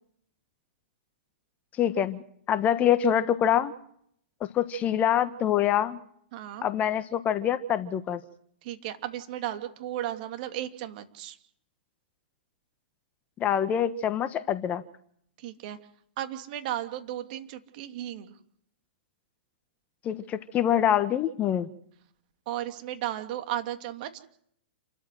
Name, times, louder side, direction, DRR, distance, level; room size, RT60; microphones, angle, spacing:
voice 1, 1.8-2.2 2.5-3.7 4.5-6.0 6.6-8.2 13.4-14.8 20.0-21.7, left 9 dB, 25° left, 12 dB, 1.3 m, -25 dB
voice 2, 6.3-6.7 8.6-11.4 15.4-15.8 16.2-18.3 22.5-24.2, right 12 dB, 50° right, 7 dB, 2.9 m, -35 dB
28.5 x 13.5 x 7.8 m, 0.67 s
hypercardioid pair, 125°, 6 cm